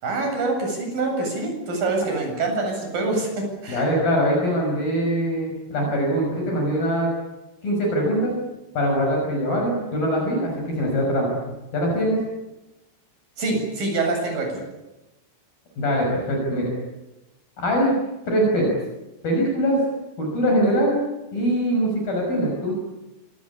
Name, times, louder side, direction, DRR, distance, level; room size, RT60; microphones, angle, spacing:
voice 1, 0.0-3.8 13.4-14.6, right 3 dB, 45° right, 2 dB, 9.4 m, -25 dB
voice 2, 3.7-7.1 7.6-8.3 8.7-11.4 11.7-12.2 15.8-16.7 17.6-18.0 18.3-18.7 19.2-19.8 20.2-21.0 21.3-22.7, equal, 45° left, 0 dB, 7.8 m, -22 dB
26.5 x 22.5 x 8.7 m, 1.0 s
omnidirectional pair, 5.6 m